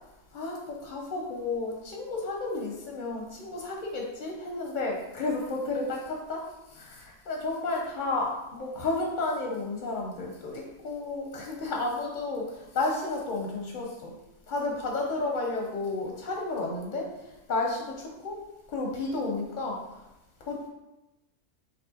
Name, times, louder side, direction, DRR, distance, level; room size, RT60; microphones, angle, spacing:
voice 1, 0.3-6.4 6.7-14.1 14.5-17.1 17.5-18.4 18.7-19.8 20.4-20.7, left 3 dB, 55° left, 0 dB, 0.6 m, -32 dB
6.3 x 2.4 x 2.8 m, 0.97 s
omnidirectional pair, 1.5 m